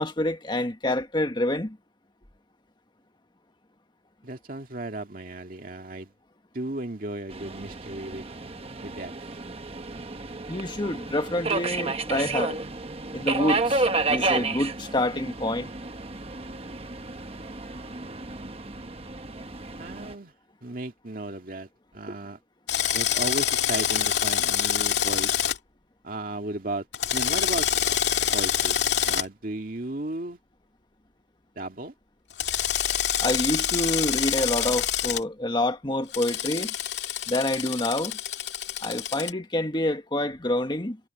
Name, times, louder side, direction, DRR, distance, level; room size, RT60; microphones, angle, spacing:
voice 1, 0.0-1.8 10.5-12.6 13.1-15.7 33.2-36.7 37.3-38.2 38.8-41.0, left 1 dB, 25° left, 1.7 m, -27 dB
voice 2, 4.2-6.1 6.5-8.3 8.8-9.1 19.8-20.3 20.6-22.4 22.9-25.3 26.0-26.9 27.1-27.7 28.3-30.4 31.6-31.9, right 2 dB, 50° right, 2.2 m, -35 dB
Subway metro underground, 7.3-20.1, right 3 dB, 35° right, 1.1 m, -31 dB
Drill, 22.7-25.6 26.9-29.2 32.4-35.2 36.1-39.3, left 9 dB, 75° left, 2.2 m, -26 dB
head